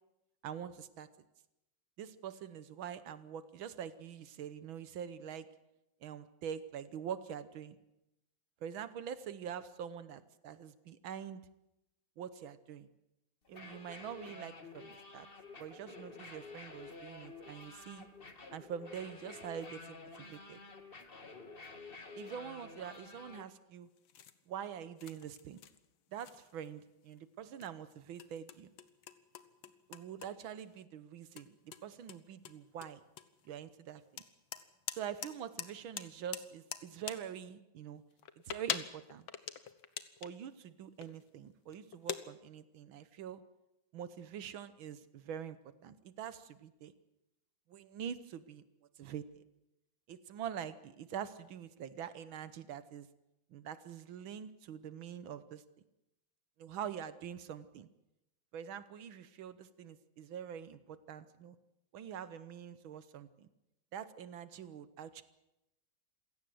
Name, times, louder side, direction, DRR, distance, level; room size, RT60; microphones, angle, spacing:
voice 1, 0.4-1.1 2.0-5.5 6.0-7.8 8.6-11.4 12.2-12.9 13.5-15.3 15.6-18.1 18.5-20.6 22.2-23.9 24.5-25.6 26.1-28.7 29.9-33.0 33.5-34.2 34.9-38.0 38.5-39.2 40.2-43.4 43.9-46.9 47.7-48.6 49.0-49.4 50.1-53.1 53.5-55.6 56.6-57.9 58.5-61.6 61.9-63.5 63.9-65.2, right 8 dB, 80° right, 14 dB, 1.8 m, -45 dB
sound 1, 13.4-23.4, left 3 dB, 30° left, 1.8 m, -51 dB
sound 2, 23.9-24.4 25.0-25.9 26.2-26.8 27.1-27.3 27.6-30.3 30.6-30.8 31.3-31.4 31.7-33.5 34.2-35.3 35.6-35.7 36.0-37.2 38.1-40.4 41.0-41.3 41.7-42.2, left 9 dB, 80° left, 2.0 m, -43 dB
27.5 x 17.0 x 7.8 m, 0.93 s
omnidirectional pair, 2.2 m